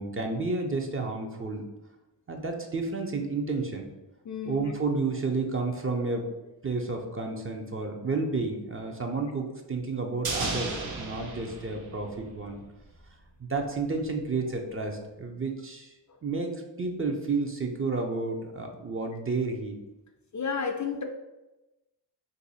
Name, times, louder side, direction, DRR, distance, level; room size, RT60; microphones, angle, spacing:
voice 1, 0.0-1.6 2.3-3.9 4.4-6.2 6.6-12.6 13.4-15.9 16.2-16.5 16.8-19.8, right 3 dB, 30° right, 2 dB, 0.6 m, -31 dB
voice 2, 4.2-4.6 20.3-21.0, left 5 dB, 40° left, 4 dB, 0.5 m, -31 dB
sound 1, 10.2-12.6 12.9-13.0, right 3 dB, 80° right, 0.8 m, -34 dB
2.7 x 2.7 x 4.0 m, 1.0 s
cardioid pair, 55°, 44 cm